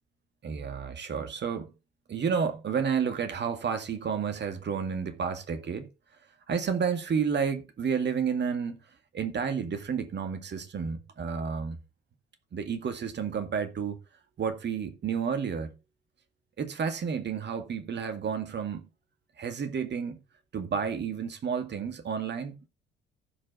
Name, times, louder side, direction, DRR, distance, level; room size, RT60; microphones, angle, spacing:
voice 1, 0.4-1.7 2.1-5.9 6.5-8.8 9.1-11.8 12.5-14.0 14.4-15.8 16.6-18.8 19.4-20.2 20.5-22.6, right 6 dB, 35° right, 2.0 m, -31 dB
15.0 x 5.3 x 3.6 m
figure-of-eight pair, 50°, 29 cm